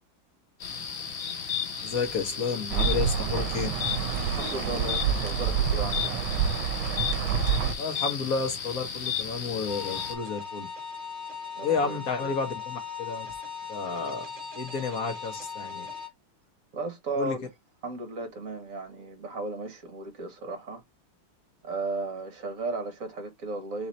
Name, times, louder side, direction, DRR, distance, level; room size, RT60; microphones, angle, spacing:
sound 1, 0.6-10.1, left 7 dB, 70° left, 1.9 m, -34 dB
voice 1, 1.8-3.7 7.8-10.7 11.6-13.3 13.7-14.3 14.5-15.9 17.1-17.4, left 5 dB, 55° left, 1.3 m, -31 dB
sound 2, 2.7-7.7, right 8 dB, 85° right, 1.4 m, -28 dB
voice 2, 4.4-6.3 11.5-12.3 16.7-17.4 17.8-20.8 21.6-23.9, right 3 dB, 45° right, 1.6 m, -35 dB
sound 3, 9.7-16.1, left 6 dB, 30° right, 1.3 m, -38 dB
4.2 x 3.9 x 3.1 m
omnidirectional pair, 2.2 m